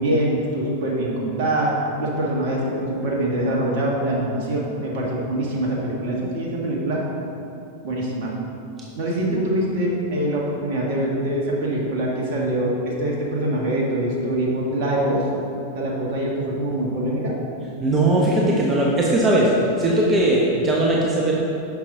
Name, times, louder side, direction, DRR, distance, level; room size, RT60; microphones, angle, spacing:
voice 1, 0.0-1.7 2.0-7.0 7.8-8.3 9.0-15.2 15.7-17.3, right 1 dB, 45° right, -3 dB, 1.6 m, -24 dB
voice 2, 17.8-19.5 19.8-21.3, right 1 dB, 20° right, -4 dB, 1.1 m, -19 dB
9.9 x 6.6 x 3.8 m, 2.8 s
figure-of-eight pair, 90°, 0 cm